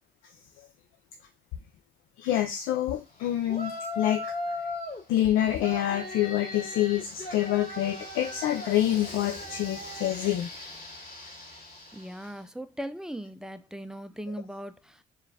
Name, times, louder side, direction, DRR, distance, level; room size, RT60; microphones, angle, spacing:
voice 1, 2.2-4.3 5.1-10.5, left 12 dB, 90° left, 0.4 m, -27 dB
Yell, 3.5-5.0 5.6-12.3, left 2 dB, 50° left, 2.0 m, -38 dB
voice 2, 11.9-15.0, right 1 dB, 5° right, 0.4 m, -39 dB
4.5 x 2.4 x 3.3 m
cardioid pair, 90°, 20 cm